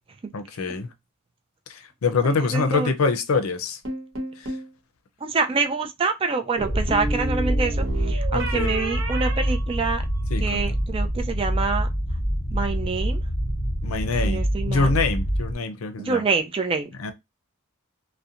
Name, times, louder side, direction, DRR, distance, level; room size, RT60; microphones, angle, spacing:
voice 1, 0.3-0.9 1.7-3.8 4.4-4.6 8.3-8.7 10.3-10.6 13.8-16.2 17.0-17.1, left 4 dB, 90° left, 0.5 m, -25 dB
voice 2, 2.2-2.9 5.2-10.0 10.4-11.9 12.5-13.2 14.2-14.9 16.0-16.9, right 4 dB, 25° right, 0.3 m, -26 dB
sound 1, 3.8-4.7 6.6-10.3, right 2 dB, 75° right, 1.0 m, -32 dB
sound 2, 6.7-15.5, equal, 20° left, 0.6 m, -26 dB
2.7 x 2.1 x 2.4 m
head